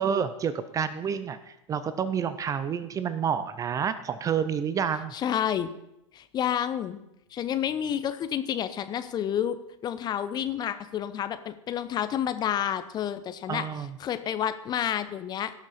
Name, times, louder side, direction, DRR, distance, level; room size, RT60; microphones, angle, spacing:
voice 1, 0.0-5.1 13.5-14.0, right 7 dB, 20° right, 13 dB, 0.5 m, -29 dB
voice 2, 5.1-5.7 6.1-7.0 7.3-9.6 9.8-13.7 14.0-15.5, left 10 dB, 25° left, 11 dB, 0.7 m, -29 dB
17.0 x 6.1 x 4.3 m, 0.87 s
figure-of-eight pair, 100°, 17 cm